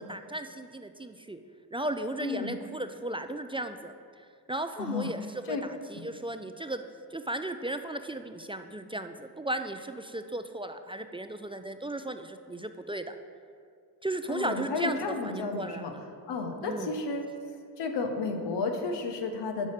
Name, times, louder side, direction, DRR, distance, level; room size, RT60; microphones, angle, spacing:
voice 1, 0.0-1.4 1.7-3.9 4.5-6.8 7.1-13.1 14.0-15.9 16.6-16.9, right 1 dB, 15° right, 8 dB, 0.4 m, -35 dB
voice 2, 2.2-2.5 4.8-5.1 5.5-5.6 14.3-15.9 16.3-17.3 17.8-19.7, left 4 dB, 90° left, 4 dB, 0.8 m, -32 dB
5.4 x 5.3 x 6.5 m, 2.3 s
supercardioid pair, 50°, 41 cm